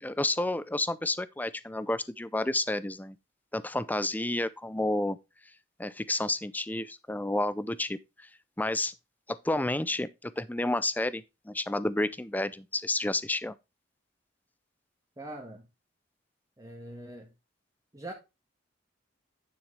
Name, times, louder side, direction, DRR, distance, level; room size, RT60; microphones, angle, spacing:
voice 1, 0.0-3.2 3.5-5.2 5.8-8.3 8.6-8.9 9.3-13.6, left 2 dB, 10° left, 0.5 m, -30 dB
voice 2, 15.2-15.7 16.6-17.3 17.9-18.1, right 1 dB, 20° right, 1.6 m, -42 dB
10.0 x 6.3 x 3.3 m
head